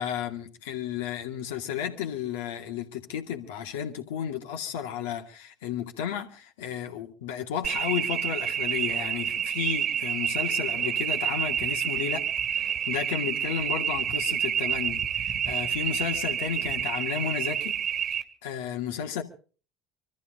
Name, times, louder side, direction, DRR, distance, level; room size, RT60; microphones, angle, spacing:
voice 1, 0.0-12.2 12.5-17.8 18.1-19.2, left 9 dB, 75° left, 2.3 m, -33 dB
sound 1, 7.6-18.2, right 9 dB, 45° right, 2.1 m, -29 dB
25.0 x 14.0 x 3.8 m
hypercardioid pair, 70°, 0 cm